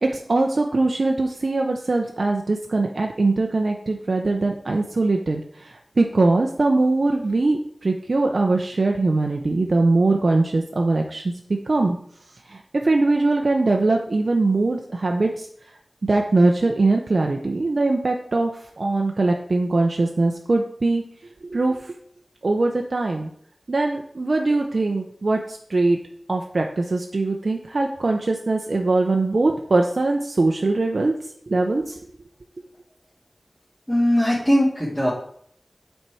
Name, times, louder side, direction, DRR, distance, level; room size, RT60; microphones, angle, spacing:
voice 1, 0.0-11.2 11.7-12.0 12.5-15.5 16.0-18.5 18.8-21.0 21.4-21.9 22.4-23.3 23.7-26.0 26.3-31.1 31.5-32.0, right 2 dB, 70° right, 2 dB, 0.6 m, -21 dB
voice 2, 33.9-35.1, equal, ahead, -8 dB, 2.5 m, -19 dB
8.0 x 4.5 x 4.8 m, 0.64 s
wide cardioid pair, 50°, 0 cm